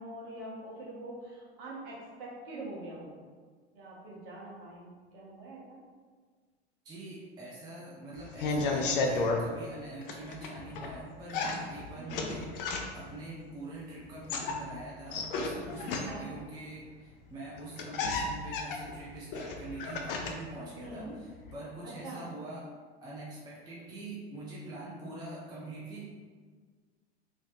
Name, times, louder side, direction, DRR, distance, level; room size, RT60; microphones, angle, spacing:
voice 1, 0.0-3.1 3.7-5.8 12.0-12.2 15.8-16.3 20.7-21.2 21.8-22.2, right 2 dB, 50° right, -5 dB, 1.1 m, -44 dB
voice 2, 6.8-22.6 23.0-26.0, right 2 dB, 10° right, -6 dB, 0.5 m, -44 dB
sound 1, 8.2-9.4 10.0-10.9 11.3-13.1 14.1-16.4 17.3-17.4 17.6-20.5 20.8-21.5, left 3 dB, 55° left, 0.5 m, -33 dB
3.1 x 2.7 x 2.7 m, 1.6 s
figure-of-eight pair, 85°, 34 cm